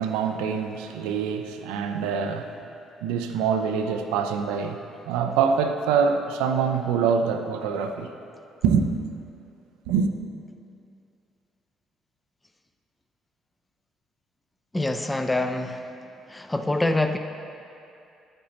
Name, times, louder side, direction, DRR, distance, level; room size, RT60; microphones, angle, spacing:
voice 1, 0.0-2.6 3.0-8.1 8.6-8.9 9.9-10.1, right 6 dB, 75° right, 6 dB, 0.4 m, -25 dB
voice 2, 14.7-15.9 16.3-17.2, left 2 dB, 15° left, 6 dB, 0.5 m, -25 dB
9.2 x 8.6 x 2.9 m, 2.5 s
hypercardioid pair, 50°, 0 cm